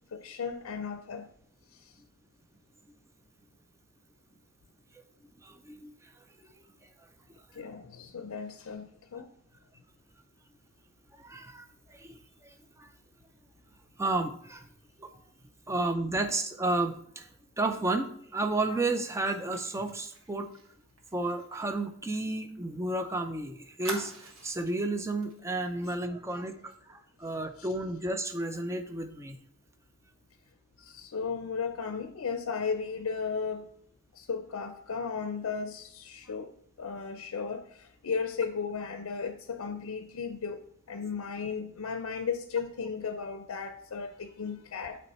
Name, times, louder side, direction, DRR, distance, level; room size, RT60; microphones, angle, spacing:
voice 1, 0.1-1.3 7.5-9.3 27.6-27.7 30.8-33.7 34.1-36.5 36.8-45.0, left 5 dB, 85° left, 0.5 m, -35 dB
voice 2, 5.4-5.9 7.5-7.7 11.2-12.9 14.0-14.7 15.0-15.1 15.7-17.3 17.6-20.5 21.1-29.4, right 2 dB, 15° right, 0.5 m, -32 dB
Fire, 19.5-23.0 23.2-23.3 23.8-24.8 25.2-25.4 25.7-25.9, right 3 dB, 75° right, 1.4 m, -44 dB
8.4 x 3.3 x 4.1 m
head